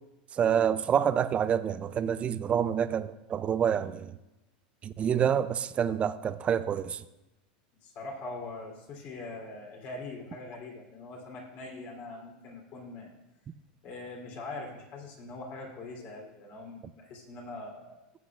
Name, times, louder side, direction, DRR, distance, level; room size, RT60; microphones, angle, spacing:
voice 1, 0.3-4.1 4.8-7.0, right 8 dB, 25° right, 0.4 m, -27 dB
voice 2, 7.8-13.1 13.8-18.0, left 2 dB, 45° left, 3.3 m, -42 dB
15.5 x 8.2 x 2.5 m
supercardioid pair, 125°, 5 cm